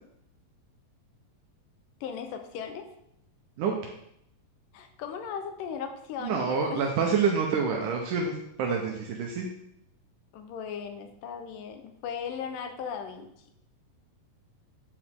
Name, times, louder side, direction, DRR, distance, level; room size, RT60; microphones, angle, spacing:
voice 1, 2.0-2.9 4.7-6.9 10.3-13.3, left 7 dB, 80° left, 6 dB, 2.4 m, -37 dB
voice 2, 6.2-9.5, right 5 dB, 75° right, 0 dB, 2.4 m, -27 dB
9.6 x 7.8 x 3.6 m, 0.76 s
omnidirectional pair, 3.9 m